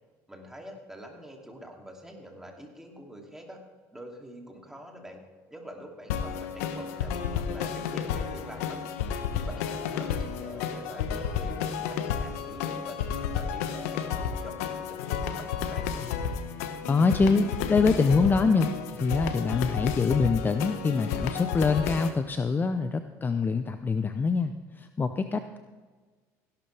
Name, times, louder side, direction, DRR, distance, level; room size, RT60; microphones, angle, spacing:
voice 1, 0.3-3.6 3.9-5.2 5.5-8.9 9.3-15.9, equal, 5° right, 1 dB, 2.8 m, -45 dB
sound 1, 6.1-22.1, left 7 dB, 90° left, 1.1 m, -32 dB
voice 2, 16.9-25.6, left 4 dB, 25° left, 9 dB, 0.7 m, -25 dB
16.5 x 11.5 x 3.4 m, 1.4 s
supercardioid pair, 90°, 8 cm